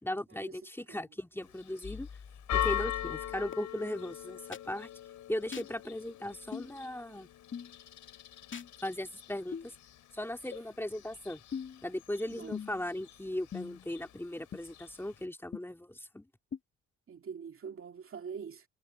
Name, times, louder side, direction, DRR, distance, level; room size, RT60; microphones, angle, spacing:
voice 1, 0.0-2.1 2.5-4.9 5.3-7.3 8.8-9.7 10.1-11.4 11.8-16.3, left 1 dB, 5° left, 2.8 m, -37 dB
Church bell, 1.4-15.2, left 12 dB, 75° left, 4.3 m, -42 dB
sound 1, 1.8-3.5 4.5-4.6 5.5-5.7 6.5-6.7 7.5-7.7 8.5-8.7 9.5-9.7 10.5-10.6 11.5-11.8 12.5-12.9 13.5-13.9 14.5-14.6 15.5-15.6 16.5-16.6, left 6 dB, 40° left, 2.3 m, -40 dB
voice 2, 17.1-18.6, right 6 dB, 45° right, 2.5 m, -44 dB
cardioid pair, 90°, 30 cm